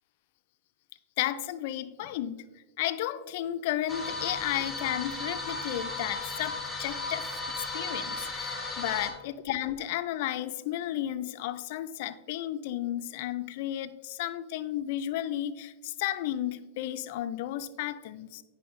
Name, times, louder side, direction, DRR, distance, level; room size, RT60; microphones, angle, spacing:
voice 1, 1.2-2.5 2.8-18.4, left 12 dB, 60° left, 0.4 m, -33 dB
sound 1, 3.9-9.1, left 3 dB, ahead, 1.2 m, -35 dB
8.7 x 5.4 x 3.1 m
supercardioid pair, 140°, 0 cm